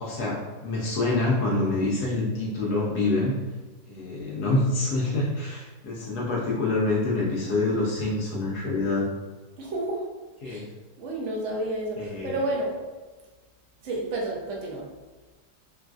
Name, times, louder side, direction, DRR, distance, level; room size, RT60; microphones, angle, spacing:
voice 1, 0.0-3.3 3.9-9.1 10.4-10.6 12.0-12.4, left 2 dB, 70° left, -5 dB, 1.0 m, -26 dB
voice 2, 9.6-10.0 10.4-10.6 11.0-12.8 13.8-14.8, right 1 dB, 80° right, -2 dB, 0.6 m, -30 dB
3.9 x 2.4 x 2.3 m, 1.3 s
omnidirectional pair, 2.1 m